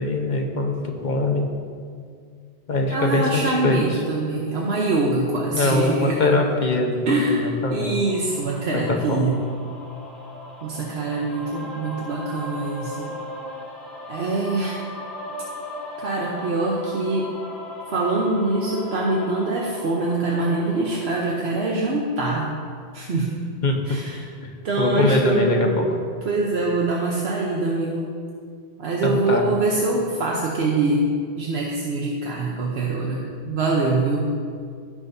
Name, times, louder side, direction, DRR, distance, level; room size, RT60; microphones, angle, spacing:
voice 1, 0.0-1.5 2.7-4.0 5.5-8.1 8.7-9.3 23.6-24.0 24.8-25.8 29.0-29.5, left 2 dB, 45° left, 1 dB, 1.1 m, -22 dB
voice 2, 2.9-6.3 7.1-7.4 7.7-9.4 10.6-13.1 14.1-14.8 16.0-17.3 17.9-22.5 22.9-23.4 23.9-24.2 24.6-25.8 26.2-28.2 28.8-34.3, right 2 dB, 70° right, -2 dB, 1.1 m, -24 dB
sound 1, 7.5-21.1, left 1 dB, ahead, 2.3 m, -38 dB
16.0 x 6.1 x 2.7 m, 2.2 s
omnidirectional pair, 1.1 m